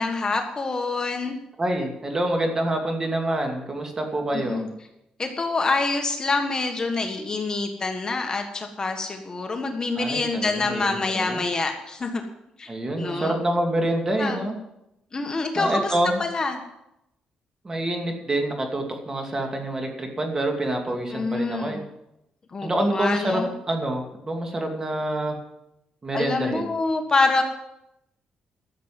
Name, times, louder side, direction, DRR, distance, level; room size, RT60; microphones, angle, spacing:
voice 1, 0.0-1.4 4.3-4.7 5.2-12.2 12.6-12.7 13.0-13.3 14.2-14.5 15.1-15.9 16.2-16.6 21.1-21.8 22.5-23.5 26.1-27.4, left 3 dB, 30° left, 4 dB, 1.5 m, -26 dB
voice 2, 1.6-4.6 10.0-11.4 12.7-14.6 15.5-16.2 17.6-21.8 22.6-25.4 26.0-26.7, right 1 dB, 25° right, 3 dB, 2.5 m, -27 dB
13.5 x 7.5 x 7.6 m, 0.85 s
cardioid pair, 120°, 3 cm